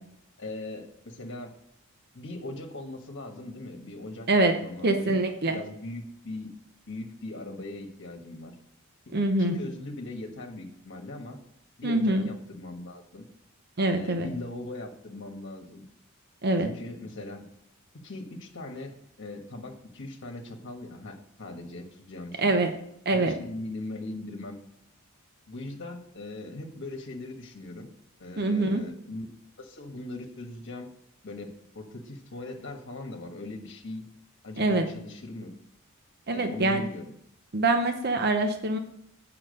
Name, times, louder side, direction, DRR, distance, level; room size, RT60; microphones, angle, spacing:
voice 1, 0.4-1.6 2.1-5.2 5.5-6.5 6.9-8.5 9.1-9.2 9.4-11.4 11.8-13.3 13.8-15.9 16.6-17.4 17.9-22.6 23.1-24.6 25.5-27.9 28.2-29.3 29.6-30.9 31.2-34.0 34.4-35.5 36.3-37.1, left 2 dB, 55° left, 2 dB, 1.4 m, -40 dB
voice 2, 4.8-5.6 9.1-9.6 11.8-12.3 13.8-14.3 16.4-16.7 22.4-22.7 23.1-23.3 28.4-28.8 34.6-34.9 36.3-36.8 37.5-38.8, right 2 dB, 45° right, 6 dB, 0.8 m, -24 dB
8.7 x 5.9 x 6.5 m, 0.74 s
head